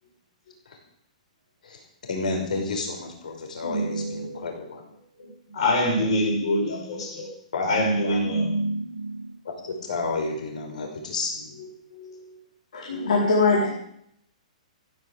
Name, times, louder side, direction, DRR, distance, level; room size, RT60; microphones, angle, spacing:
voice 1, 2.1-4.8 7.5-7.7 8.0-8.2 9.4-11.5, left 3 dB, 80° left, 2 dB, 5.5 m, -31 dB
voice 2, 3.6-4.4 5.2-5.3 5.5-7.3 7.6-9.2 10.7-10.8 11.9-12.3 12.9-13.3, equal, 45° left, -1 dB, 6.5 m, -26 dB
voice 3, 12.7-13.7, left 3 dB, 65° left, -2 dB, 4.4 m, -21 dB
15.5 x 11.0 x 7.6 m, 0.71 s
hypercardioid pair, 175°, 4 cm